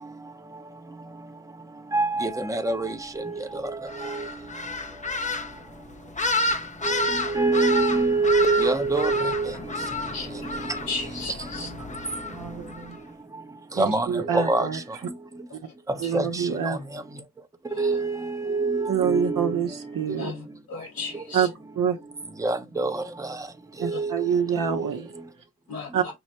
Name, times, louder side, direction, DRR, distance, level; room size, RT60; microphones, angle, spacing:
voice 1, 1.9-4.3 6.8-9.9 10.3-10.8 13.8-14.8 16.1-17.0 17.8-19.6 20.1-20.2 21.1-21.2 22.4-23.5 23.8-24.3 24.6-24.9, right 3 dB, 10° right, 0.8 m, -26 dB
sound 1, 3.9-13.0, left 2 dB, 20° left, 0.6 m, -31 dB
voice 2, 10.9-11.7 20.2-20.3 20.7-21.4 25.7-25.9, left 4 dB, 80° left, 2.5 m, -33 dB
voice 3, 11.6-11.9 12.3-13.0 13.8-14.8 15.5-15.6 16.0-16.8 18.9-20.3 21.3-22.0 23.8-25.1 25.9-26.0, right 7 dB, 65° right, 0.8 m, -26 dB
5.4 x 2.1 x 2.9 m
cardioid pair, 50°, 35 cm